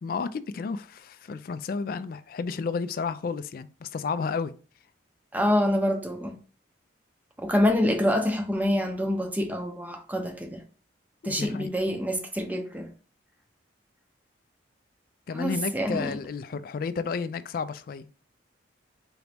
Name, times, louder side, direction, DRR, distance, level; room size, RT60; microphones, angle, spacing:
voice 1, 0.0-4.5 11.2-11.7 15.3-18.1, left 5 dB, 50° left, 0.3 m, -32 dB
voice 2, 5.3-6.3 7.4-10.6 11.2-12.9 15.3-16.2, left 1 dB, 10° right, 0.6 m, -26 dB
3.9 x 3.0 x 3.4 m
head